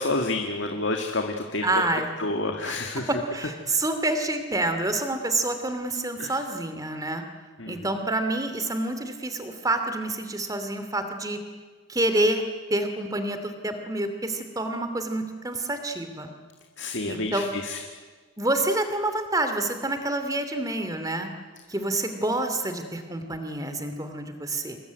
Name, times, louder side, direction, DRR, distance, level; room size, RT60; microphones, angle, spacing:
voice 1, 0.0-1.6 2.2-3.1 6.2-6.3 7.6-7.8 16.8-17.8, left 2 dB, 65° left, 3 dB, 2.1 m, -29 dB
voice 2, 1.6-2.1 2.6-7.2 7.7-11.4 11.9-12.4 12.7-16.3 17.1-17.5 18.4-21.3 21.7-24.8, right 2 dB, 15° right, 7 dB, 2.7 m, -28 dB
27.5 x 21.0 x 9.5 m, 1.4 s
head